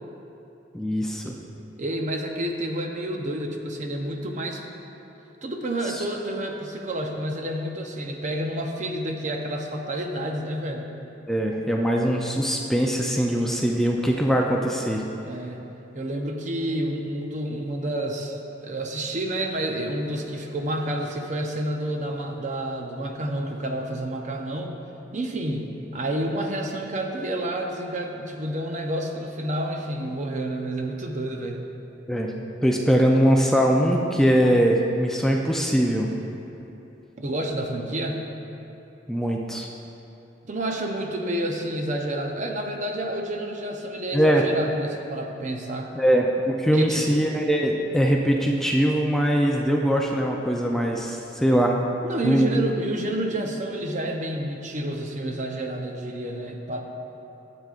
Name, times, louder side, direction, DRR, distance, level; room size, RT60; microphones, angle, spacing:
voice 1, 0.7-1.4 5.9-6.0 11.3-15.0 32.1-32.3 32.6-36.1 39.1-39.7 44.1-44.4 45.9-51.8 52.2-52.6, equal, 5° left, 0 dB, 0.4 m, -22 dB
voice 2, 1.8-4.6 5.4-10.9 15.2-15.7 15.9-24.7 25.1-31.6 37.2-38.2 40.5-45.9 46.7-47.2 52.0-56.8, right 1 dB, 40° right, 2 dB, 0.7 m, -29 dB
12.5 x 7.7 x 2.5 m, 2.9 s
head